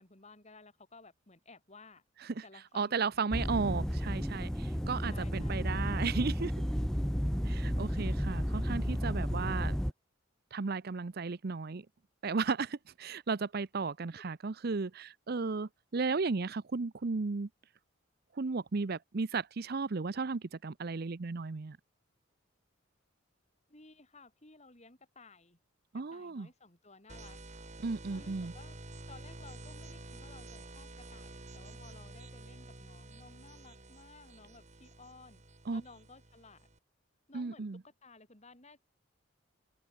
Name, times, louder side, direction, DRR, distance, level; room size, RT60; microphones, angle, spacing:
voice 1, 0.0-2.0 2.4-3.3 5.0-5.7 23.7-25.6 26.1-27.4 28.1-28.8 29.1-35.4 35.7-36.7 37.3-38.8, left 3 dB, 35° left, 3.5 m, -56 dB
voice 2, 2.7-6.5 7.4-9.8 10.5-11.9 12.2-17.5 18.3-21.8 25.9-26.5 27.8-28.5 35.7-35.8 37.3-37.8, right 4 dB, 50° right, 0.6 m, -34 dB
sound 1, 3.3-9.9, equal, 5° left, 1.0 m, -32 dB
sound 2, 27.1-36.8, right 2 dB, 35° right, 1.9 m, -50 dB
open air
head